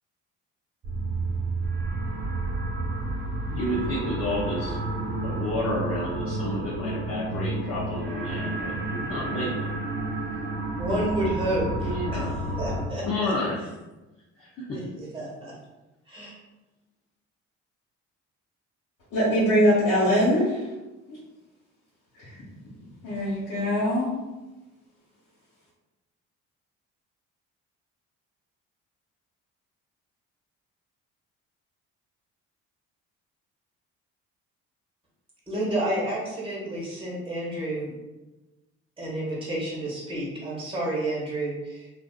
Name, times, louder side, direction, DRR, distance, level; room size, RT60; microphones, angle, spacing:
sound 1, 0.8-12.8, right 2 dB, 35° right, 1.2 m, -30 dB
voice 1, 3.5-4.8 5.2-9.7 11.8-12.3 13.1-13.6 14.4-14.8, left 1 dB, 45° left, -6 dB, 0.6 m, -30 dB
voice 2, 10.8-12.2 12.6-13.3 14.7-15.5 16.1-16.3 35.5-37.9 39.0-41.9, right 1 dB, 15° right, -5 dB, 1.2 m, -30 dB
voice 3, 19.1-20.6 22.2-22.4 23.0-24.2, equal, 75° left, -10 dB, 1.0 m, -22 dB
2.5 x 2.3 x 2.2 m, 1.1 s
supercardioid pair, 60°, 33 cm